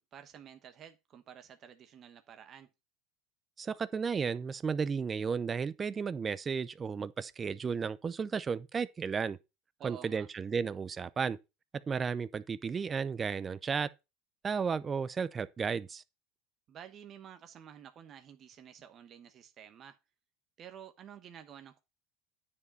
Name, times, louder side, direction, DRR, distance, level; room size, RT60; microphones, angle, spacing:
voice 1, 0.0-2.7 9.8-10.3 16.7-20.0 20.6-21.8, right 9 dB, 40° right, 1.1 m, -51 dB
voice 2, 3.6-9.4 9.8-11.4 11.9-13.9 14.4-16.0, right 6 dB, 25° right, 0.6 m, -33 dB
9.8 x 4.9 x 5.3 m
supercardioid pair, 120°, 0 cm